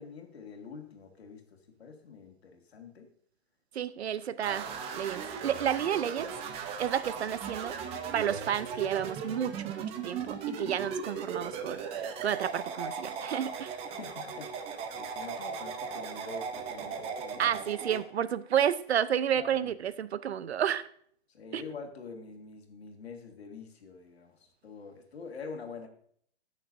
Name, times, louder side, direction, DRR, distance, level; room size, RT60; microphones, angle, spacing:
voice 1, 0.0-3.1 14.0-14.7 15.0-17.6 19.3-19.7 21.3-25.9, left 5 dB, 75° left, 2.1 m, -46 dB
voice 2, 3.7-4.7 4.9-6.3 6.8-7.8 8.1-13.7 17.4-20.8 21.5-21.6, right 9 dB, 85° right, 0.6 m, -31 dB
sound 1, 4.4-18.0, right 6 dB, 20° right, 0.7 m, -38 dB
18.0 x 6.5 x 2.6 m
hypercardioid pair, 140°, 31 cm